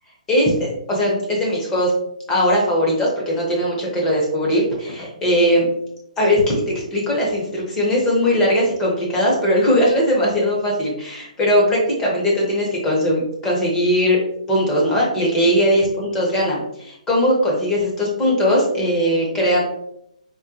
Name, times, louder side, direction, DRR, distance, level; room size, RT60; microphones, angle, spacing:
voice 1, 0.3-1.9 2.3-5.7 6.2-14.2 14.5-19.6, equal, 10° left, -3 dB, 0.7 m, -19 dB
3.5 x 2.1 x 2.8 m, 0.76 s
hypercardioid pair, 165°, 4 cm